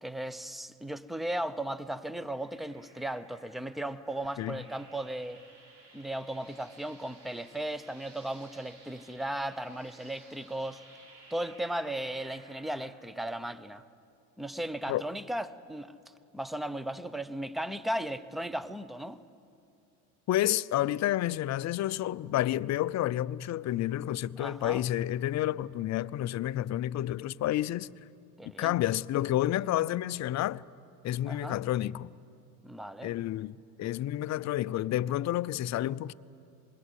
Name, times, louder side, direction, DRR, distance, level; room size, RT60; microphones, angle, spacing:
voice 1, 0.0-5.4 5.9-10.8 11.3-13.8 14.4-15.9 16.3-19.2 24.4-24.8 28.4-28.8 31.2-31.6 32.6-33.1, right 1 dB, ahead, 0.8 m, -36 dB
sound 1, 2.1-12.9, right 2 dB, 65° right, 5.4 m, -57 dB
voice 2, 20.3-27.9 28.6-30.6 31.0-32.1 33.0-36.1, left 13 dB, 40° left, 0.6 m, -30 dB
26.0 x 21.5 x 8.3 m
hypercardioid pair, 85°, 45 cm